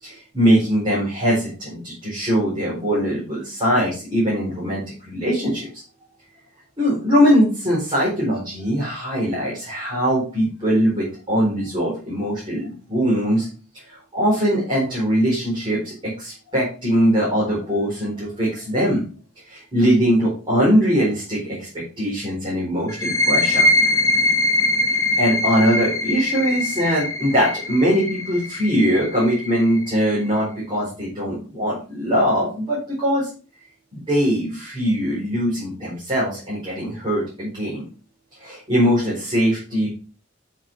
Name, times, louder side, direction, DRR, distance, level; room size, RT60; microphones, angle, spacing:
voice 1, 0.0-5.7 6.8-13.5 13.9-19.0 19.5-23.7 25.2-33.3 33.9-37.9 38.4-39.9, equal, 25° right, -7 dB, 4.5 m, -21 dB
sound 1, 22.9-30.3, left 2 dB, 15° left, 1.0 m, -22 dB
9.0 x 6.3 x 3.7 m, 0.36 s
head